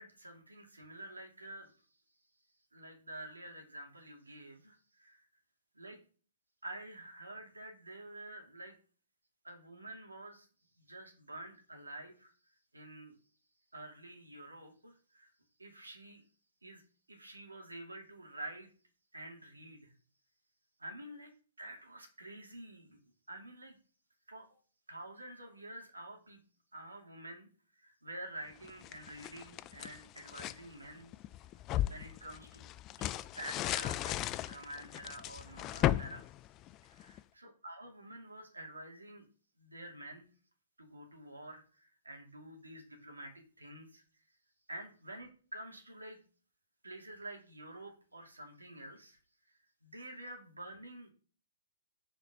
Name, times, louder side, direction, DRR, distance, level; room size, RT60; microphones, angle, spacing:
voice 1, 0.0-1.7 2.7-5.3 5.7-6.0 6.6-8.8 9.4-10.5 10.8-12.3 12.7-13.1 13.7-15.3 15.6-16.2 16.6-16.8 17.1-18.7 19.1-19.9 20.8-21.3 21.6-23.0 23.3-23.8 24.3-24.5 24.9-26.4 26.7-27.5 27.8-31.1 31.7-34.2 34.4-36.2 36.8-39.3 39.6-40.3 40.8-44.0 44.7-46.2 46.8-49.5 49.8-51.1, right 1 dB, 90° right, 2 dB, 2.5 m, -49 dB
sound 1, 28.6-30.6 31.1-37.2, left 14 dB, 30° left, 0.3 m, -36 dB
5.6 x 5.0 x 5.4 m, 0.40 s
figure-of-eight pair, 120°, 0 cm